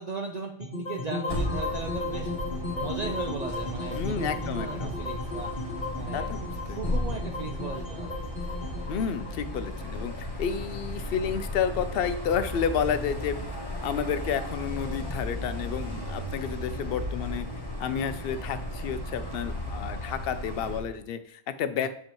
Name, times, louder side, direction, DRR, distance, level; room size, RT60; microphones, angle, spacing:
voice 1, 0.0-2.3 2.7-5.5 5.9-8.2 21.8-21.9, right 4 dB, 60° right, 3 dB, 0.4 m, -37 dB
sound 1, 0.6-10.8, left 2 dB, 35° left, 1.3 m, -36 dB
sound 2, 1.3-20.8, left 1 dB, 20° left, 1.0 m, -35 dB
voice 2, 3.9-4.9 6.1-6.8 8.9-13.4 13.8-17.5 17.8-21.9, left 7 dB, 60° left, 11 dB, 0.6 m, -31 dB
6.9 x 5.3 x 3.0 m, 0.69 s
omnidirectional pair, 1.4 m